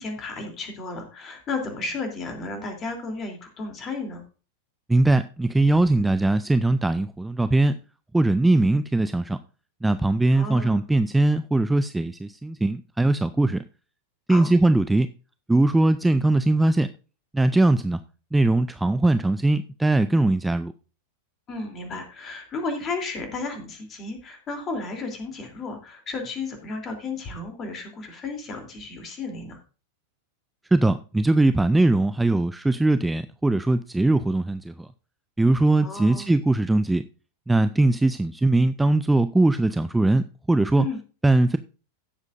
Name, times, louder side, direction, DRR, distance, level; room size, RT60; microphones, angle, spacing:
voice 1, 0.0-4.2 10.3-10.8 14.3-14.5 21.5-29.6 35.8-36.3 40.8-41.0, left 3 dB, 30° left, 3.2 m, -33 dB
voice 2, 4.9-7.8 8.1-9.4 9.8-13.6 14.3-15.1 15.5-16.9 17.3-18.0 18.3-20.7 30.7-34.9 35.4-37.0 37.5-40.9 41.2-41.6, right 2 dB, 5° right, 0.4 m, -21 dB
16.5 x 7.4 x 2.6 m
figure-of-eight pair, 90°, 0 cm